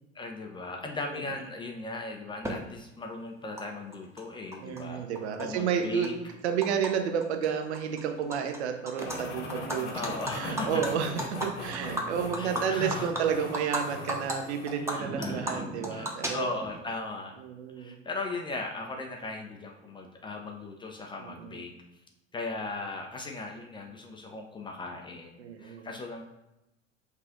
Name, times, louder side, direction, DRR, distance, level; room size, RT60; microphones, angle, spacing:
voice 1, 0.1-5.1 5.4-6.1 9.9-10.8 12.3-13.1 14.8-15.6 15.9-17.4 17.8-21.7 22.3-26.2, left 3 dB, 15° left, 2 dB, 0.4 m, -38 dB
Animal, 2.4-2.5 3.6-3.7 3.9-4.8 5.2-6.9 7.2-7.5 7.7-8.6 8.9-9.2 9.5-13.8 14.1-14.3 14.7-16.8, right 1 dB, 5° right, 0.8 m, -35 dB
voice 2, 4.6-6.1 6.4-9.9 10.3-16.5 17.4-17.9 21.2-21.6 25.4-25.9, right 7 dB, 60° right, 5 dB, 0.8 m, -31 dB
sound 1, 9.1-14.9, left 2 dB, 70° left, 1.0 m, -40 dB
5.7 x 2.5 x 3.7 m, 0.94 s
figure-of-eight pair, 75°, 37 cm